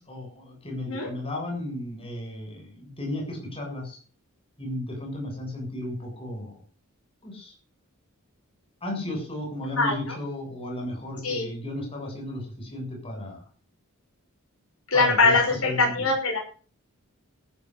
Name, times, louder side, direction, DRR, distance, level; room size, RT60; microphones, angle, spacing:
voice 1, 0.0-4.0 4.6-6.6 7.2-7.5 8.8-13.4 14.9-15.4 15.6-16.1, left 1 dB, 25° left, 0 dB, 7.8 m, -34 dB
voice 2, 9.7-10.2 11.2-11.5 14.9-16.4, left 3 dB, 70° left, 1 dB, 5.8 m, -22 dB
14.0 x 8.3 x 8.4 m, 0.41 s
head